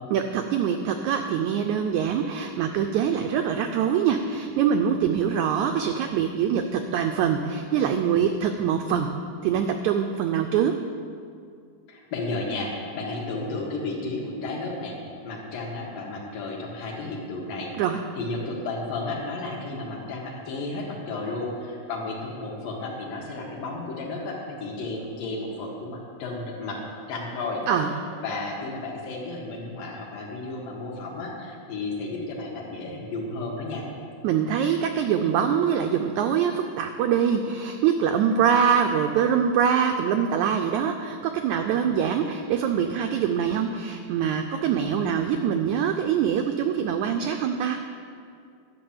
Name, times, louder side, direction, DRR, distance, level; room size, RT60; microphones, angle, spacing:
voice 1, 0.1-9.1 9.4-10.7 17.8-18.0 27.7-27.9 34.2-47.8, right 8 dB, 90° right, 5 dB, 1.6 m, -24 dB
voice 2, 11.9-15.0 15.2-17.7 18.2-26.8 27.1-27.6 28.2-33.8, left 2 dB, 75° left, -3 dB, 3.2 m, -33 dB
12.0 x 6.1 x 8.7 m, 2.3 s
omnidirectional pair, 4.0 m